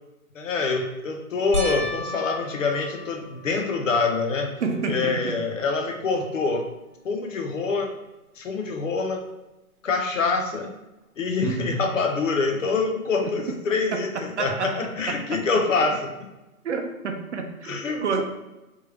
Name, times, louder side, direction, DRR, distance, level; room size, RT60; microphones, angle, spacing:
voice 1, 0.3-4.5 4.9-6.7 7.0-7.9 8.4-9.2 9.8-10.7 11.2-16.1 17.6-18.2, left 4 dB, 60° left, 3 dB, 0.8 m, -25 dB
sound 1, 1.5-4.1 4.7-5.3 5.7-5.8 9.0-9.1, equal, 90° right, 0.8 m, -34 dB
voice 2, 4.6-5.4 11.4-11.8 14.4-14.8 15.1-15.6 16.6-18.2, right 4 dB, 55° right, 5 dB, 0.6 m, -29 dB
3.5 x 3.0 x 3.4 m, 1.0 s
figure-of-eight pair, 140°, 43 cm